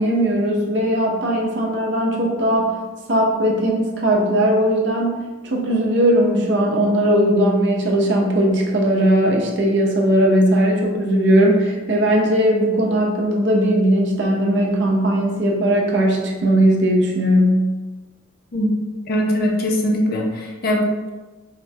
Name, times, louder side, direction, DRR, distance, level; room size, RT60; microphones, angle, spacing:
voice 1, 0.0-2.7 3.1-17.7, right 1 dB, 60° right, -1 dB, 0.6 m, -18 dB
voice 2, 19.1-21.1, equal, 50° left, 0 dB, 0.5 m, -21 dB
4.2 x 2.1 x 2.7 m, 1.3 s
head